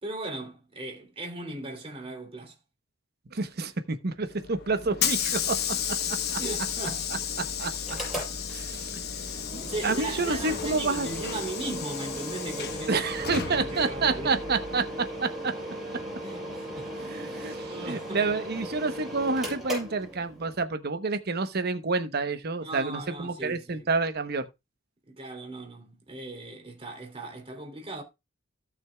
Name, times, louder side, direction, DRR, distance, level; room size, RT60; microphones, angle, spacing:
voice 1, 0.0-2.5 6.4-7.1 7.7-7.9 9.6-14.4 16.2-16.9 17.3-18.2 22.6-23.9 25.1-28.0, right 2 dB, 30° right, 2.8 m, -38 dB
voice 2, 3.3-5.6 6.3-6.4 7.6-7.7 8.5-9.0 9.5-11.1 12.9-14.8 15.2-15.5 17.0-24.5, right 3 dB, 50° right, 1.0 m, -29 dB
Hiss / Sliding door, 4.3-15.2, left 8 dB, 55° left, 1.1 m, -33 dB
Mechanical fan, 7.8-20.6, right 1 dB, ahead, 6.3 m, -37 dB
17.0 x 6.3 x 2.3 m
head